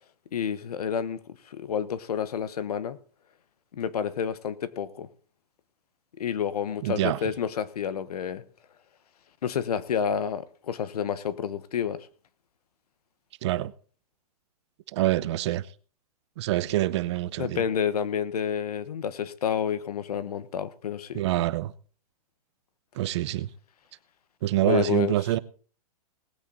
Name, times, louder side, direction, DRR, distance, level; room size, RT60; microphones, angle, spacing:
voice 1, 0.3-3.0 3.7-5.1 6.2-8.4 9.4-12.1 17.4-21.2 24.6-25.3, left 8 dB, 90° left, 1.2 m, -29 dB
voice 2, 6.8-7.2 13.4-13.7 14.9-15.6 16.4-17.6 21.1-21.7 23.0-23.5 24.4-25.4, right 15 dB, 50° right, 0.6 m, -26 dB
19.0 x 8.8 x 4.0 m
hypercardioid pair, 155°, 19 cm